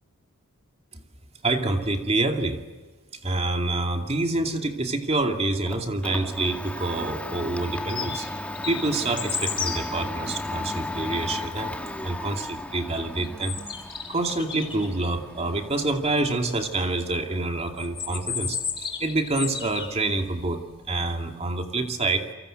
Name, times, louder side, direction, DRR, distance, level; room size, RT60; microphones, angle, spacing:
voice 1, 1.4-2.6 3.2-8.3 8.6-11.7 12.0-13.6 14.1-20.6 20.9-22.2, right 2 dB, 30° right, 5 dB, 2.5 m, -27 dB
Domestic sounds home sounds, 5.2-21.0, left 1 dB, 5° left, 1.8 m, -36 dB
sound 1, 7.8-8.3 8.6-9.8 13.2-14.9 17.8-20.0, left 6 dB, 25° left, 4.0 m, -32 dB
28.5 x 24.0 x 7.9 m, 1.3 s
head